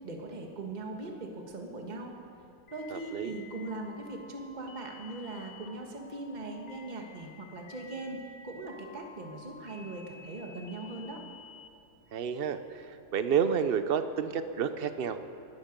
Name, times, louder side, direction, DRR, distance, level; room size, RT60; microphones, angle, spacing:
voice 1, 0.0-2.1 2.7-11.2, right 2 dB, 25° right, 2 dB, 1.5 m, -40 dB
sound 1, 2.7-11.7, left 5 dB, 60° left, 1.7 m, -52 dB
voice 2, 2.9-3.3 12.1-15.2, right 7 dB, 65° right, 10 dB, 0.5 m, -30 dB
20.5 x 12.0 x 5.2 m, 2.5 s
omnidirectional pair, 1.8 m